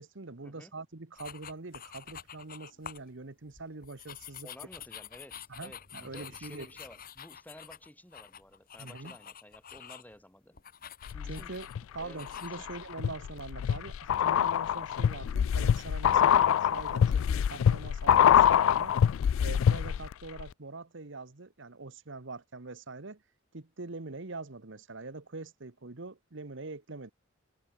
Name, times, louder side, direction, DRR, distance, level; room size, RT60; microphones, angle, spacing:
voice 1, 0.0-4.5 5.5-6.7 8.8-9.2 11.3-11.7 11.9-18.9 19.4-23.2 23.5-27.1, right 3 dB, 65° right, 1.3 m, -43 dB
sound 1, 1.2-3.1 3.5-10.2 10.5-11.8 12.2-12.5, left 8 dB, 45° left, 1.4 m, -48 dB
voice 2, 4.4-10.6 11.1-11.5 12.0-12.3 12.6-12.7, left 1 dB, 10° left, 2.1 m, -52 dB
sound 2, 11.1-11.8 12.3-20.1 20.4-20.5, left 8 dB, 85° left, 0.3 m, -25 dB
head